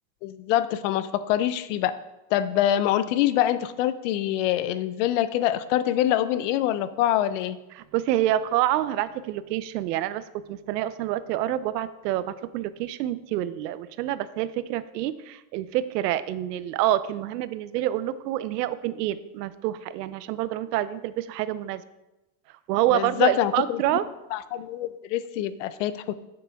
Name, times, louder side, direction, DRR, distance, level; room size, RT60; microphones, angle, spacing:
voice 1, 0.2-1.9 2.3-7.6 22.9-23.8 24.3-26.1, left 12 dB, 55° left, 15 dB, 0.5 m, -25 dB
voice 2, 7.8-21.8 22.7-24.0, right 13 dB, 85° right, 15 dB, 0.7 m, -27 dB
8.5 x 7.7 x 3.5 m, 0.99 s
supercardioid pair, 165°, 47 cm